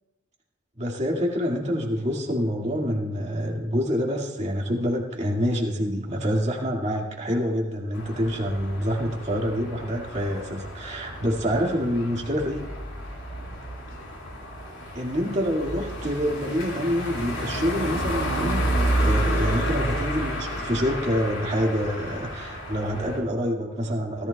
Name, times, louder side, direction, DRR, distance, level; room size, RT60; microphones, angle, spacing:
voice 1, 0.8-12.7 14.9-24.3, equal, 35° right, -1 dB, 2.2 m, -27 dB
sound 1, 7.9-23.2, equal, 85° left, 4.7 m, -30 dB
17.5 x 14.0 x 2.4 m, 1.1 s
head